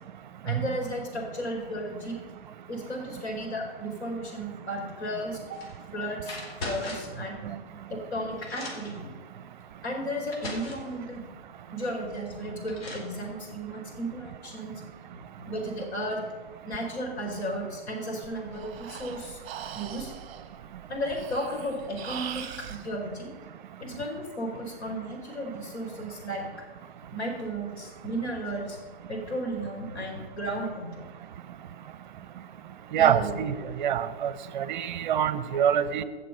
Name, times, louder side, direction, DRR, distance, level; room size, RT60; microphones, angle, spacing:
voice 1, 0.4-2.2 2.7-5.6 5.9-7.4 7.9-9.1 9.8-11.3 11.7-14.8 15.4-16.2 16.7-19.4 19.7-20.1 20.9-23.3 23.8-26.4 27.1-28.8 29.1-31.0 32.9-33.5 34.0-34.1, equal, 80° left, 0 dB, 4.5 m, -34 dB
sound 1, 5.5-5.8 6.2-7.2 8.0-8.1 8.4-9.0 9.8-9.9 10.3-10.9 12.2-12.3 12.7-13.1, left 2 dB, 65° left, 4.2 m, -39 dB
Breathing, 18.2-22.8, right 8 dB, 30° right, 1.2 m, -41 dB
voice 2, 32.9-36.0, right 9 dB, 45° right, 14 dB, 0.7 m, -25 dB
16.5 x 6.7 x 5.7 m, 1.4 s
hypercardioid pair, 150°, 32 cm